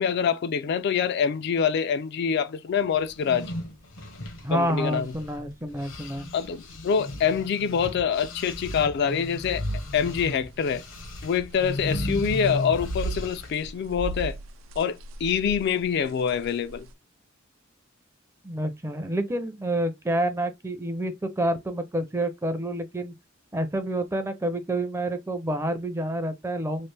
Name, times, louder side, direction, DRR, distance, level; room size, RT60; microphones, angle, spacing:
voice 1, 0.0-3.5 4.5-5.1 6.3-9.6 9.9-10.8 11.2-14.4 14.8-16.9, left 7 dB, 55° left, 0.3 m, -25 dB
sound 1, 3.1-5.5 5.8-13.7, left 1 dB, 75° left, 0.9 m, -35 dB
voice 2, 4.4-6.3 18.4-23.1 23.5-26.9, right 1 dB, 15° right, 0.5 m, -28 dB
sound 2, 9.8-10.2 10.7-12.1 12.4-16.9, right 4 dB, 85° right, 0.4 m, -37 dB
3.1 x 2.5 x 3.2 m
head